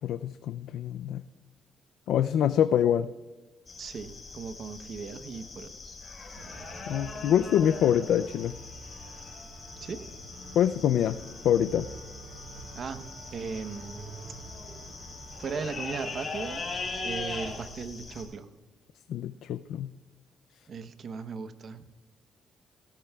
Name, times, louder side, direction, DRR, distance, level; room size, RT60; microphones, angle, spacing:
voice 1, 0.0-1.2 2.1-3.1 6.9-8.6 10.5-11.2 11.4-11.9 19.1-19.9, left 10 dB, 80° left, 12 dB, 0.4 m, -25 dB
sound 1, 3.7-18.3, left 3 dB, 35° left, 4.9 m, -41 dB
voice 2, 3.8-6.0 9.8-10.0 12.7-13.0 13.3-14.1 15.4-16.7 17.0-18.5 20.7-21.8, right 5 dB, 55° right, 10 dB, 0.9 m, -37 dB
sound 2, 6.3-17.5, right 3 dB, 90° right, 5.1 m, -48 dB
17.5 x 17.0 x 2.3 m, 1.3 s
cardioid pair, 90°, 0 cm